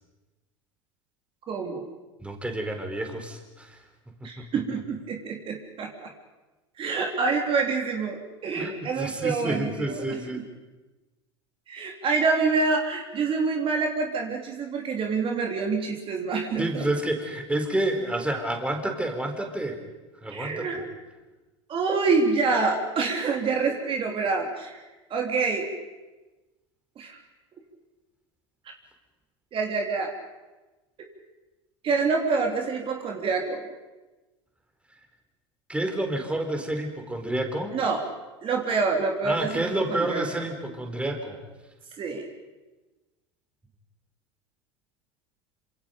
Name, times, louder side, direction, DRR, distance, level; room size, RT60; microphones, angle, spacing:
voice 1, 1.5-1.9 4.2-6.1 6.8-10.0 10.3-10.4 11.7-16.9 20.3-20.8 21.7-24.8 25.1-25.7 27.0-27.2 29.5-30.1 31.8-33.6 37.7-38.0 38.4-40.4 42.0-42.3, right 4 dB, 40° right, 2 dB, 3.4 m, -27 dB
voice 2, 2.2-3.8 4.1-4.6 8.5-10.4 16.6-19.8 20.2-20.8 35.7-37.8 39.2-41.4, right 1 dB, 10° right, 4 dB, 4.1 m, -29 dB
27.0 x 26.5 x 5.3 m, 1.1 s
hypercardioid pair, 90°, 14 cm